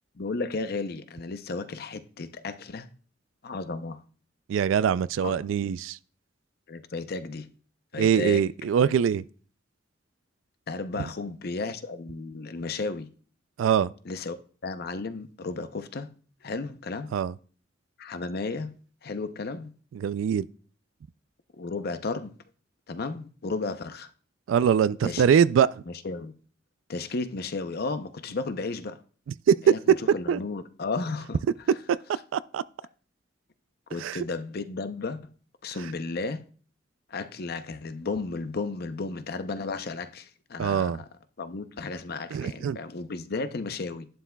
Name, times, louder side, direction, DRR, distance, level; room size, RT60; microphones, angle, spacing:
voice 1, 0.2-2.9 3.4-4.0 5.2-5.4 6.7-7.5 7.9-8.4 10.7-13.1 14.1-14.4 14.6-16.1 16.4-17.1 18.0-18.7 19.0-19.7 21.6-22.3 22.9-24.1 25.0-25.2 25.9-26.3 26.9-29.0 29.6-29.8 30.1-31.4 33.9-35.2 35.6-36.4 37.1-40.9 41.4-44.1, left 3 dB, 55° left, 0.6 m, -33 dB
voice 2, 4.5-6.0 8.0-9.2 13.6-13.9 17.1-17.3 19.9-20.5 24.5-25.8 29.5-29.7 30.3-30.4 31.9-32.0 32.3-32.6 34.0-34.2 40.6-41.0 42.3-42.8, right 8 dB, 85° right, 0.3 m, -23 dB
11.0 x 9.4 x 2.3 m
head